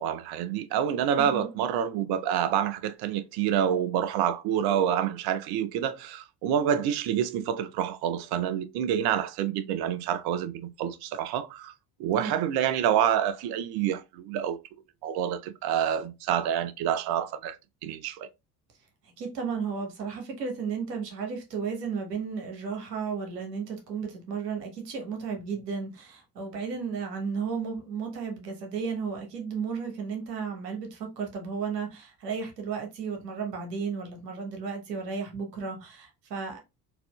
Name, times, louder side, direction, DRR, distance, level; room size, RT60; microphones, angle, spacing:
voice 1, 0.0-11.7 12.0-14.6 15.0-17.6 17.8-18.3, right 9 dB, 50° right, 0.6 m, -27 dB
voice 2, 1.2-1.5 12.2-12.4 19.2-36.6, right 5 dB, 80° right, 1.1 m, -34 dB
4.1 x 2.5 x 2.2 m
figure-of-eight pair, 55°, 48 cm